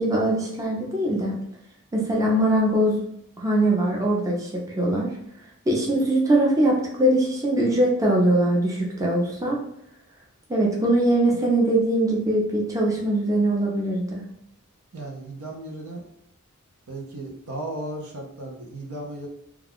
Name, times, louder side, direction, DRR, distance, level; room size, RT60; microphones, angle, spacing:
voice 1, 0.0-1.3 1.9-3.0 3.4-5.1 5.7-9.6 10.5-14.2, right 1 dB, 15° right, -3 dB, 0.5 m, -22 dB
voice 2, 14.9-16.0 16.9-19.3, right 1 dB, 80° right, 1 dB, 0.7 m, -35 dB
2.3 x 2.3 x 3.5 m, 0.75 s
head